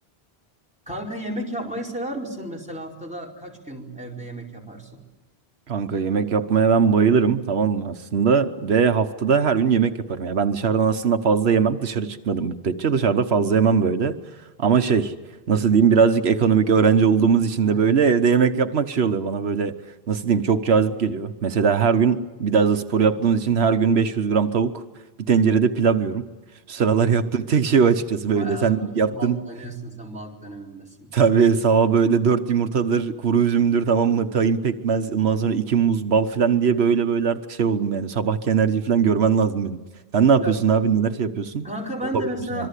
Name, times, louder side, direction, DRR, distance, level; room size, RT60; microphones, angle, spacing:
voice 1, 0.9-5.0 17.6-18.0 28.3-31.1 40.4-40.6 41.6-42.7, right 1 dB, 5° right, -2 dB, 4.6 m, -33 dB
voice 2, 5.7-14.1 14.6-15.1 15.5-19.7 20.1-24.8 25.3-26.2 26.7-29.4 31.1-39.8 40.1-41.6 42.1-42.7, right 6 dB, 90° right, 8 dB, 1.3 m, -20 dB
26.0 x 23.0 x 8.3 m, 1.2 s
omnidirectional pair, 1.0 m